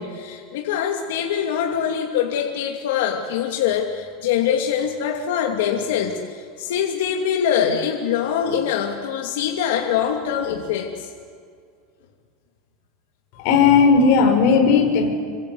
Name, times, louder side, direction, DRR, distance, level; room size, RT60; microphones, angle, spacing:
voice 1, 0.0-11.1, left 8 dB, 80° left, 1 dB, 2.8 m, -23 dB
voice 2, 13.4-15.1, left 5 dB, 50° left, 4 dB, 5.7 m, -15 dB
27.5 x 25.0 x 8.2 m, 2.1 s
supercardioid pair, 165°, 0 cm